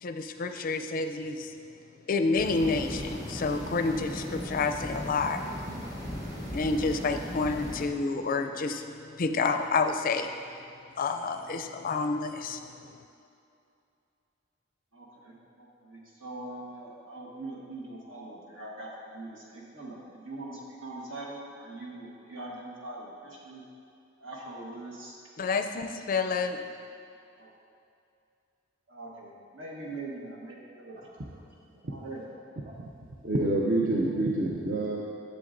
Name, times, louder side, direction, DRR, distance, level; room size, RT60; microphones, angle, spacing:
voice 1, 0.0-1.5 2.1-5.5 6.0-6.1 6.3-10.3 11.0-12.9 25.4-26.6, left 4 dB, 45° left, 6 dB, 0.4 m, -29 dB
sound 1, 2.3-7.9, equal, 20° right, 1.2 m, -37 dB
voice 2, 14.9-23.6 24.2-25.2 27.4-27.5 28.9-31.0 31.9-32.4, right 2 dB, 70° right, -3 dB, 1.4 m, -42 dB
voice 3, 32.6-32.9 33.2-35.0, right 2 dB, 45° right, -4 dB, 0.6 m, -28 dB
10.5 x 6.9 x 2.6 m, 2.6 s
head